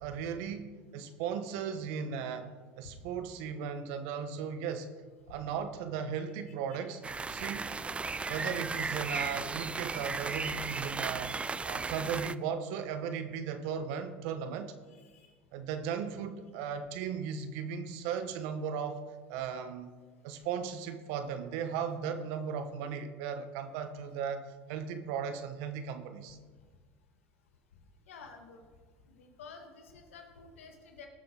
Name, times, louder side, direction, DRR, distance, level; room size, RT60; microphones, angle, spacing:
voice 1, 0.0-2.5 2.8-4.9 5.3-7.0 7.3-7.8 8.3-11.3 11.6-14.7 15.5-19.0 19.3-20.0 20.2-26.4, right 7 dB, 70° right, 10 dB, 1.1 m, -36 dB
sound 1, 7.0-12.4, right 4 dB, 15° right, 0.3 m, -35 dB
voice 2, 14.9-15.3 28.1-28.6 29.2-31.1, left 5 dB, 90° left, 4 dB, 1.7 m, -51 dB
18.5 x 7.0 x 3.9 m, 1.4 s
hypercardioid pair, 80°, 7 cm